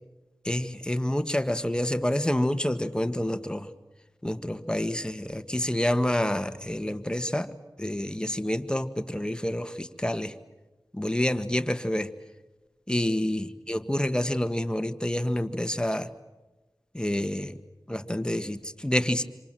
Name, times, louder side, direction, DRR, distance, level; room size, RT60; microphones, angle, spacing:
voice 1, 0.4-3.7 4.2-7.5 7.8-10.3 10.9-12.1 12.9-16.1 16.9-17.6 17.9-19.2, left 1 dB, 10° left, 9 dB, 1.6 m, -28 dB
26.5 x 26.0 x 7.6 m, 1.1 s
wide cardioid pair, 55°, 7 cm